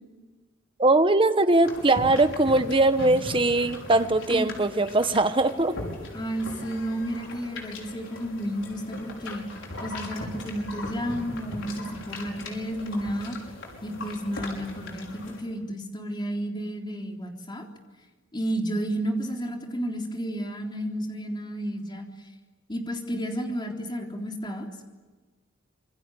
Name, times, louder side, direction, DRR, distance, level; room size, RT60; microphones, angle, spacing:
voice 1, 0.8-5.8, right 2 dB, 25° right, 10 dB, 1.2 m, -21 dB
sound 1, 1.6-15.4, left 2 dB, 70° left, 5.8 m, -39 dB
voice 2, 6.1-9.4 9.8-13.4 13.8-17.7 18.3-22.1 22.7-24.7, equal, 25° left, 1 dB, 3.7 m, -32 dB
26.5 x 24.0 x 9.3 m, 1.3 s
head